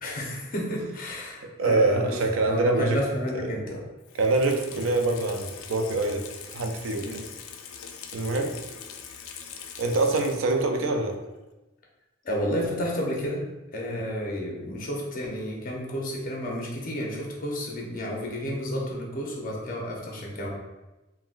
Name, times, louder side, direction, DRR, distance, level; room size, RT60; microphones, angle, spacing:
voice 1, 0.0-3.8 7.0-7.2 12.2-13.4 13.7-20.5, equal, 45° left, -2 dB, 0.6 m, -31 dB
voice 2, 1.4-3.0 3.3-3.4 4.2-6.2 6.5-7.2 8.1-8.5 9.8-11.2 13.9-14.0, right 2 dB, 80° right, 4 dB, 0.4 m, -25 dB
Water tap faucet / Sink (filling or washing), 4.0-10.7 11.1-11.2, left 7 dB, 80° left, 0.3 m, -42 dB
3.7 x 2.1 x 2.4 m, 1.1 s
head